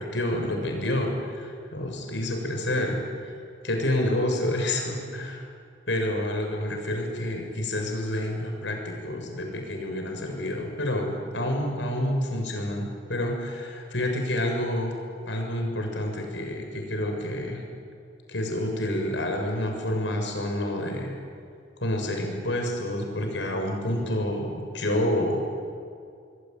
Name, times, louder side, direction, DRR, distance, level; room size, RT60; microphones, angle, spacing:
voice 1, 0.0-3.0 3.6-5.4 5.9-14.9 15.3-17.6 18.3-21.1 21.8-25.4, left 1 dB, 85° left, 2 dB, 6.8 m, -28 dB
28.0 x 21.5 x 9.4 m, 2.3 s
head